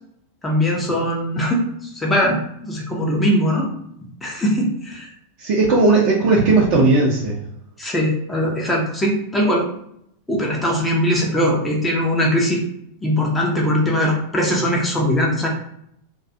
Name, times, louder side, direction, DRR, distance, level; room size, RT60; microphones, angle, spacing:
voice 1, 0.4-2.4 2.6-3.7 4.0-5.1 7.8-9.6 10.3-12.6 13.0-15.5, equal, 10° left, -2 dB, 0.5 m, -20 dB
voice 2, 5.4-7.4, right 3 dB, 45° right, -5 dB, 0.5 m, -16 dB
2.3 x 2.2 x 2.6 m, 0.73 s
figure-of-eight pair, 90°, 0 cm